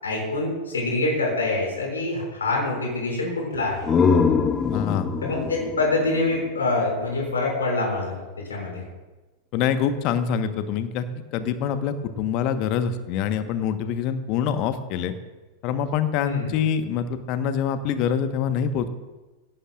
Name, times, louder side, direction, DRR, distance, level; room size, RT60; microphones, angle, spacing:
voice 1, 0.0-3.8 5.2-8.2 8.5-8.8 16.2-16.6, left 2 dB, 70° left, -1 dB, 6.3 m, -25 dB
sound 1, 3.5-7.2, left 5 dB, 20° left, 1.3 m, -24 dB
voice 2, 4.7-5.1 9.5-11.1 11.3-15.1 15.6-18.9, left 8 dB, 40° left, 10 dB, 1.3 m, -25 dB
23.5 x 17.0 x 2.5 m, 1.2 s
figure-of-eight pair, 90°, 0 cm